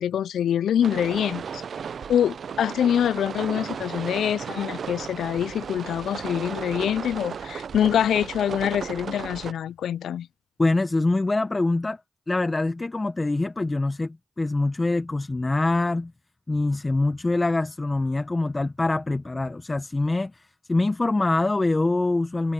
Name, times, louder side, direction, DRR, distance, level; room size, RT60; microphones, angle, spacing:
voice 1, 0.0-1.6 2.1-10.3, left 9 dB, 85° left, 0.3 m, -25 dB
sound 1, 0.8-9.5, right 7 dB, 70° right, 0.5 m, -35 dB
voice 2, 10.6-12.0 12.3-16.1 16.5-22.5, left 2 dB, 30° left, 1.0 m, -24 dB
supercardioid pair, 45°, 0 cm